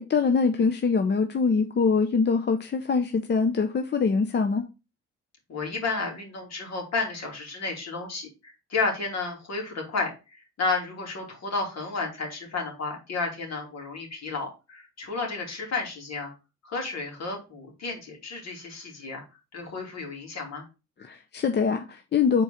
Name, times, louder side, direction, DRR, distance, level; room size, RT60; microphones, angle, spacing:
voice 1, 0.1-4.6 21.0-22.4, left 5 dB, 35° left, 6 dB, 0.7 m, -23 dB
voice 2, 5.5-16.3 16.6-19.2 19.5-20.6, left 3 dB, 60° left, 1 dB, 2.8 m, -32 dB
4.6 x 4.0 x 5.7 m, 0.29 s
cardioid pair, 90°, 30 cm